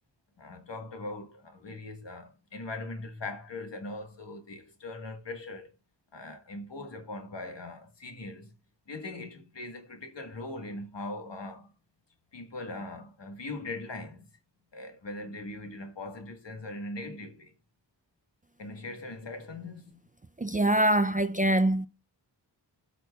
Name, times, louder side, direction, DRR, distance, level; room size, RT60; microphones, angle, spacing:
voice 1, 0.4-5.7 6.1-8.5 8.9-11.7 12.3-14.3 14.7-17.5 18.6-20.0, left 2 dB, 70° left, 1.5 m, -40 dB
voice 2, 20.4-21.9, right 1 dB, 20° right, 0.4 m, -24 dB
14.5 x 5.9 x 2.3 m
wide cardioid pair, 75°, 44 cm